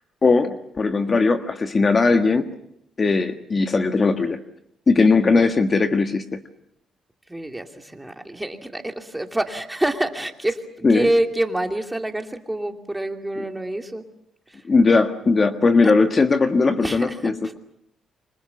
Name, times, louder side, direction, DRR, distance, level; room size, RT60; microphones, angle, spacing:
voice 1, 0.2-2.5 3.0-4.4 4.9-6.4 10.8-11.1 14.7-17.3, left 4 dB, 35° left, 7 dB, 1.6 m, -18 dB
voice 2, 7.3-14.0 14.5-14.6 15.8-15.9 16.8-17.3, right 1 dB, 10° right, 5 dB, 2.8 m, -27 dB
27.0 x 25.5 x 7.1 m, 0.73 s
cardioid pair, 90°, 0 cm